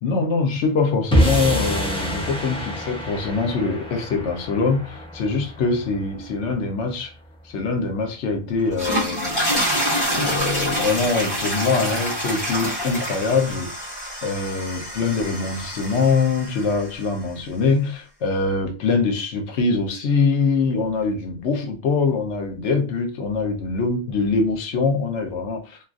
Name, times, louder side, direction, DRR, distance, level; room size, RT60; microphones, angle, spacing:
voice 1, 0.0-7.1 7.4-9.4 10.1-13.7 14.2-25.8, left 4 dB, 85° left, 1.0 m, -23 dB
sound 1, 1.1-7.5, equal, 5° left, 0.5 m, -26 dB
sound 2, 8.6-16.9, equal, 40° left, 1.4 m, -26 dB
3.0 x 2.4 x 2.3 m
omnidirectional pair, 1.2 m